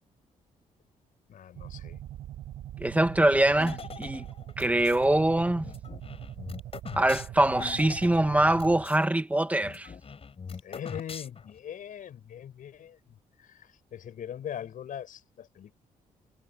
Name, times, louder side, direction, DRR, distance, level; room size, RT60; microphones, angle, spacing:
voice 1, 1.3-2.0 10.6-15.7, left 9 dB, 70° left, 7.3 m, -41 dB
sound 1, 1.5-8.8, right 12 dB, 85° right, 6.0 m, -42 dB
voice 2, 2.8-4.2 4.6-5.7 7.0-9.9, right 1 dB, 10° right, 2.0 m, -24 dB
sound 2, 3.6-5.0 5.6-9.0 9.3-9.4 9.6-11.6, left 5 dB, 45° left, 5.6 m, -42 dB
cardioid pair, 85°, 14 cm